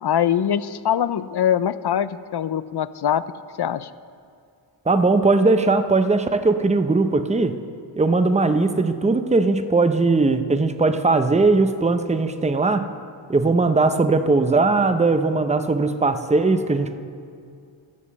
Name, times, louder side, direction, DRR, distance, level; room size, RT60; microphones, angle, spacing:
voice 1, 0.0-3.2 3.6-3.9, left 9 dB, 55° left, 15 dB, 0.5 m, -22 dB
voice 2, 4.9-7.5 8.0-12.9 13.3-17.0, right 3 dB, 15° right, 9 dB, 0.6 m, -19 dB
12.5 x 7.3 x 7.3 m, 2.4 s
wide cardioid pair, 85°, 49 cm